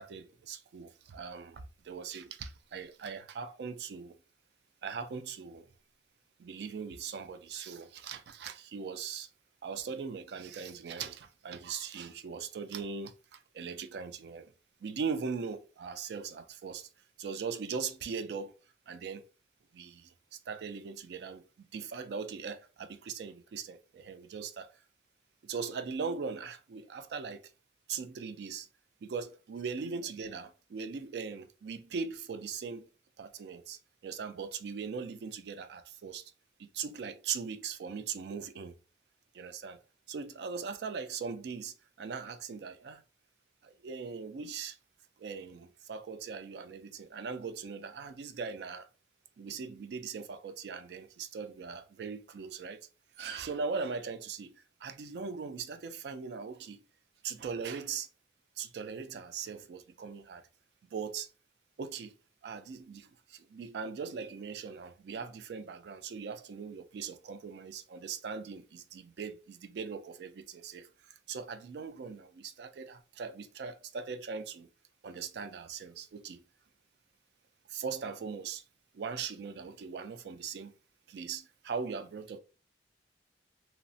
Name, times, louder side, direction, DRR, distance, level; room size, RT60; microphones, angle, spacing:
voice 1, 0.0-4.1 4.8-5.7 6.4-9.3 9.6-14.5 14.8-16.9 17.2-18.5 18.9-19.3 19.7-24.7 25.4-27.4 27.9-28.7 29.0-32.9 33.2-36.2 36.6-38.7 39.3-39.8 40.1-43.0 43.6-44.8 45.2-48.9 49.4-52.8 53.2-54.6 54.8-56.8 57.2-58.1 58.6-60.4 60.9-61.3 61.8-62.1 62.4-74.7 75.0-76.4 77.7-78.6 78.9-80.7 81.1-82.4, right 5 dB, 65° right, 0.3 m, -40 dB
3.0 x 2.0 x 2.6 m
head